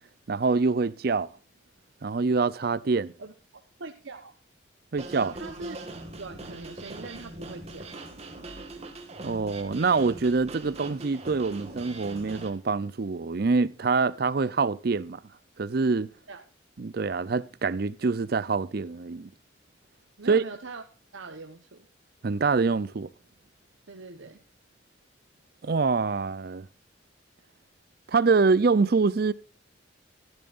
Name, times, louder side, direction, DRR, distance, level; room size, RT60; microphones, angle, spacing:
voice 1, 0.3-1.3 2.0-3.1 4.9-5.3 9.2-15.2 15.6-16.1 16.8-19.3 20.3-20.4 22.2-23.1 25.6-26.7 28.1-29.3, right 4 dB, 50° right, 0.5 m, -25 dB
voice 2, 3.2-4.4 5.1-5.8 6.2-7.9 16.3-16.4 20.2-20.8 21.1-21.9 23.9-24.4, right 3 dB, 80° right, 1.0 m, -42 dB
sound 1, 5.0-12.5, right 2 dB, 35° right, 1.9 m, -42 dB
14.0 x 12.5 x 2.5 m
head